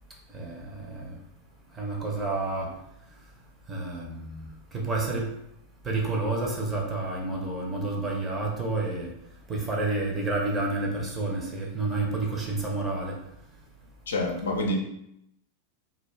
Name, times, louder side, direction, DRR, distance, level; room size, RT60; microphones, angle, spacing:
voice 1, 0.3-1.1 1.8-2.7 3.7-4.4 4.7-5.3 5.8-9.1 9.5-13.1, right 2 dB, 15° right, -1 dB, 0.7 m, -29 dB
voice 2, 14.1-14.8, left 1 dB, 65° left, 1 dB, 0.5 m, -27 dB
2.4 x 2.2 x 3.1 m, 0.78 s
figure-of-eight pair, 90°, 0 cm